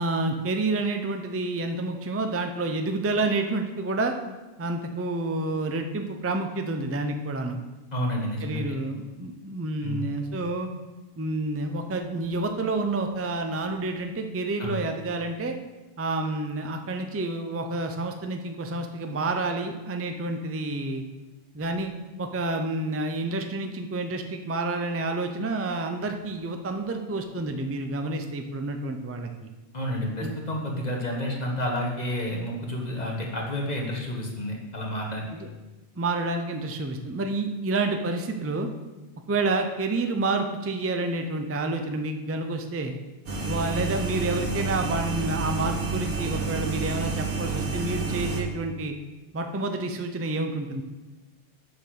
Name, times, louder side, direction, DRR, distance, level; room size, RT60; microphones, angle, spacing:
voice 1, 0.0-4.1 4.6-7.6 8.4-10.7 11.2-15.6 16.0-21.0 21.5-21.9 22.2-29.5 30.2-30.4 35.3-35.5 36.0-38.7 39.3-43.0 43.4-48.9 49.3-50.8, right 2 dB, 20° right, 5 dB, 0.4 m, -29 dB
voice 2, 7.9-8.8 9.8-10.1 14.6-14.8 29.7-35.3, left 1 dB, 40° left, 0 dB, 1.5 m, -30 dB
sound 1, 43.3-48.4, right 4 dB, 80° right, 1.9 m, -29 dB
6.7 x 5.9 x 6.4 m, 1.1 s
omnidirectional pair, 1.2 m